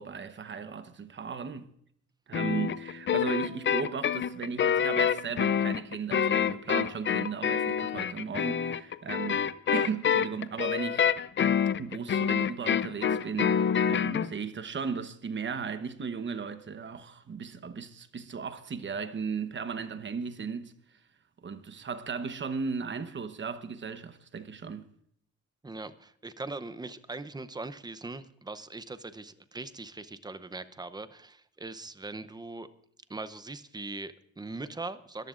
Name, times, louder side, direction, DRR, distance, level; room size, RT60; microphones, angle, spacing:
voice 1, 0.0-1.7 2.3-9.5 9.7-11.1 11.8-20.8 21.4-24.9, right 5 dB, 40° right, 1.0 m, -36 dB
sound 1, 2.3-14.3, left 8 dB, 40° left, 0.5 m, -27 dB
voice 2, 25.6-32.7 33.1-35.3, right 3 dB, 15° right, 0.7 m, -40 dB
21.5 x 14.5 x 2.5 m
cardioid pair, 130°, 29 cm